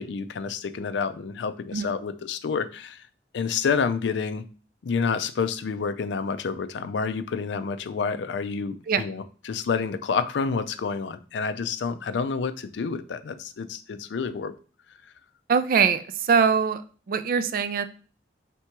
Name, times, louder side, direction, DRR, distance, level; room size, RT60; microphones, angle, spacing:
voice 1, 0.0-3.1 3.3-4.4 4.8-14.5, left 5 dB, 80° left, 12 dB, 0.4 m, -29 dB
voice 2, 15.5-16.8 17.1-17.8, right 6 dB, 50° right, 11 dB, 0.3 m, -22 dB
3.4 x 2.9 x 4.5 m, 0.38 s
head